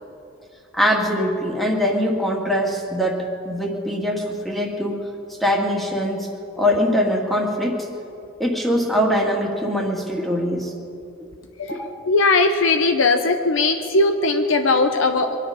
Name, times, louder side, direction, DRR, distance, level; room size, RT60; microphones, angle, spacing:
voice 1, 0.7-5.1 5.4-6.3 6.6-7.9 8.4-10.7 11.7-12.0, equal, ahead, 0 dB, 1.8 m, -22 dB
voice 2, 11.6-15.4, left 3 dB, 70° left, 6 dB, 0.8 m, -19 dB
24.0 x 10.0 x 5.7 m, 2.7 s
head